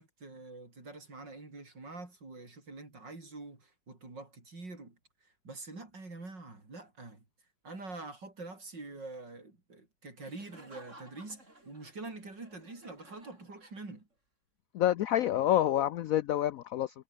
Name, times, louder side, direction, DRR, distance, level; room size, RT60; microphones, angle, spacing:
voice 1, 0.0-5.0 5.4-7.2 7.6-14.1, right 3 dB, 70° right, 6.3 m, -46 dB
Laughter, 10.2-14.1, right 2 dB, 40° right, 7.1 m, -56 dB
voice 2, 14.7-17.0, left 12 dB, 75° left, 0.8 m, -28 dB
omnidirectional pair, 2.0 m